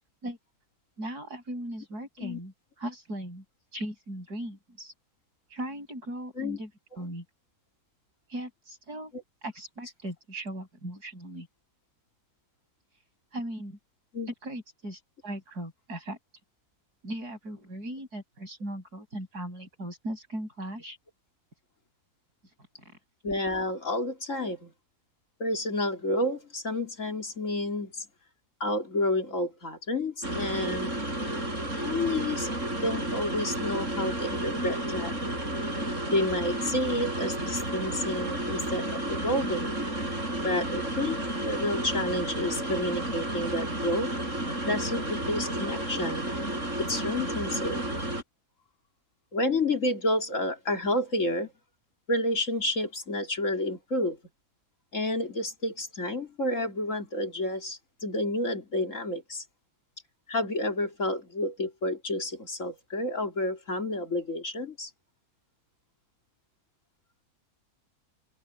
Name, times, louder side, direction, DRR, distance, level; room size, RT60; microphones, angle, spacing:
voice 1, 1.0-3.4 3.7-4.9 5.5-6.7 7.0-7.2 8.3-9.1 9.4-11.5 13.3-13.8 14.4-16.2 17.0-21.0 22.9-23.0, right 1 dB, 80° right, 8.8 m, -38 dB
voice 2, 23.2-24.7 25.4-28.1 28.6-30.9 31.8-35.1 36.1-39.8 40.4-44.1 44.7-46.3 46.8-47.9 49.3-51.5 52.1-54.2 54.9-59.4 60.3-64.9, left 1 dB, 50° left, 3.5 m, -30 dB
sound 1, 30.2-48.2, right 1 dB, 50° right, 8.1 m, -32 dB
omnidirectional pair, 1.7 m